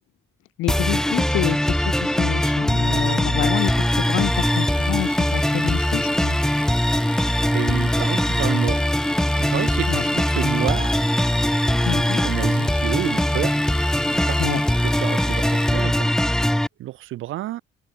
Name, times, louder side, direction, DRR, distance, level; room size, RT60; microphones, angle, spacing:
voice 1, 0.6-6.4 9.9-10.0 11.9-12.2 14.4-14.6, left 18 dB, 90° left, 0.5 m, -28 dB
sound 1, 0.7-16.7, equal, 5° left, 1.0 m, -21 dB
Domestic sounds home sounds, 3.6-15.9, left 4 dB, 25° left, 2.4 m, -40 dB
voice 2, 7.5-8.9 9.4-11.1 11.5-13.6 14.3-14.4 14.8-17.6, right 15 dB, 85° right, 3.3 m, -30 dB
cardioid pair, 90°, 20 cm